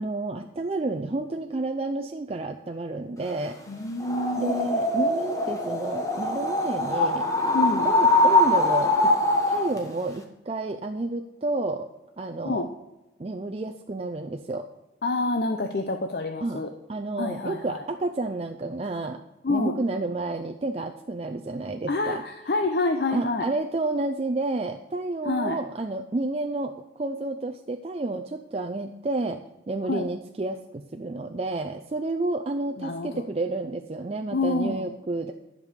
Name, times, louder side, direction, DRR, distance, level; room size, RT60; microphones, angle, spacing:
voice 1, 0.0-3.6 4.4-7.3 7.8-9.1 9.5-11.9 12.2-12.7 13.2-14.7 16.4-16.6 16.9-19.2 19.5-22.2 23.1-29.4 29.7-35.3, right 2 dB, 35° right, 4 dB, 0.4 m, -30 dB
voice 2, 3.7-4.7 7.5-7.9 12.4-12.7 15.0-16.7 17.2-17.8 19.4-19.8 21.9-23.5 25.2-25.6 29.9-30.1 32.8-33.2 34.3-34.9, left 2 dB, 55° left, 5 dB, 0.7 m, -27 dB
sound 1, 4.0-9.8, left 2 dB, 20° left, 1.1 m, -23 dB
11.0 x 5.3 x 6.7 m, 1.0 s
head